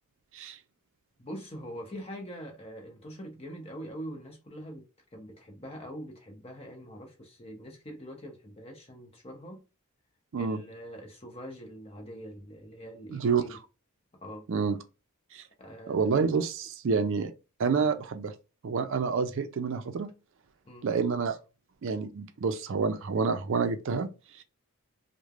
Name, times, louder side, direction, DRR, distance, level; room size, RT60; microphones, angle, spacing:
voice 1, 1.2-4.8 5.1-9.6 10.4-13.6 14.2-14.5 15.6-16.3 17.7-17.9 20.6-20.9, equal, 25° left, 0.8 m, -43 dB
voice 2, 13.1-13.6 14.5-14.8 15.3-15.4 15.9-17.3 17.6-18.3 18.6-20.1 20.8-21.4 21.8-24.1 24.3-24.4, right 5 dB, 60° right, 0.4 m, -28 dB
3.1 x 2.1 x 2.3 m
head